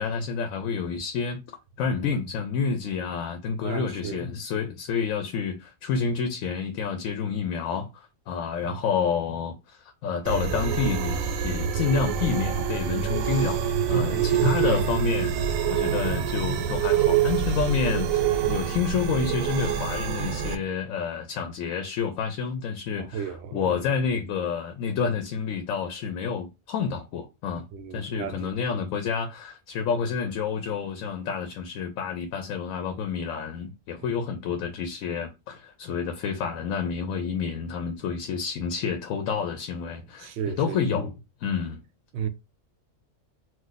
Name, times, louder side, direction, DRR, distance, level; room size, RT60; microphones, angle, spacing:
voice 1, 0.0-1.4 1.8-13.6 13.9-27.6 27.9-41.8, left 6 dB, 90° left, 1.0 m, -29 dB
voice 2, 3.6-4.2 8.6-8.7 13.9-14.8 23.0-23.7 27.7-28.5 40.2-40.8 42.1-42.3, right 7 dB, 65° right, 0.7 m, -32 dB
sound 1, 10.3-20.6, right 8 dB, 90° right, 1.0 m, -26 dB
2.5 x 2.3 x 3.8 m
omnidirectional pair, 1.4 m